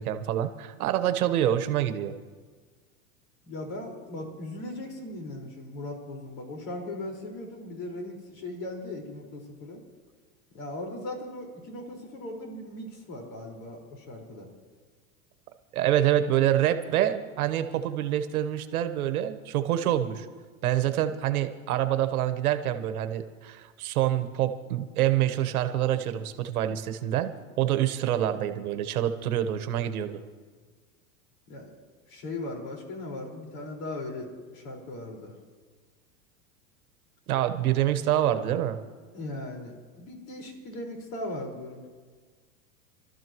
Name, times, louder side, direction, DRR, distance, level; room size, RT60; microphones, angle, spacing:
voice 1, 0.0-2.1 15.7-20.3 20.6-27.3 27.6-30.2 37.3-38.8, right 11 dB, 90° right, 9 dB, 1.3 m, -26 dB
voice 2, 3.4-9.8 10.5-14.5 31.5-31.7 32.1-35.3 39.1-41.9, left 1 dB, 65° left, 0 dB, 5.1 m, -38 dB
28.5 x 13.0 x 3.1 m, 1.5 s
supercardioid pair, 130°, 42 cm